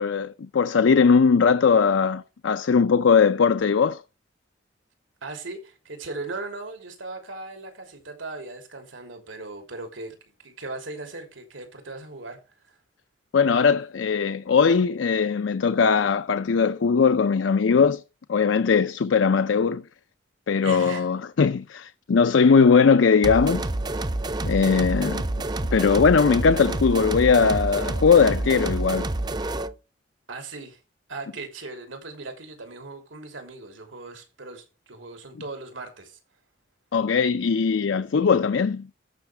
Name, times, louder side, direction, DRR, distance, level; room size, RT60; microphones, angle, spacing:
voice 1, 0.0-4.0 13.3-18.0 18.3-19.8 20.5-23.7 24.4-25.2 25.7-29.1 36.9-38.9, left 5 dB, 80° left, 0.5 m, -20 dB
voice 2, 5.2-12.8 20.6-21.1 30.3-30.8 31.1-36.2, right 3 dB, 90° right, 3.0 m, -38 dB
sound 1, 23.2-29.8, right 2 dB, 20° right, 0.5 m, -28 dB
14.0 x 5.8 x 3.3 m
head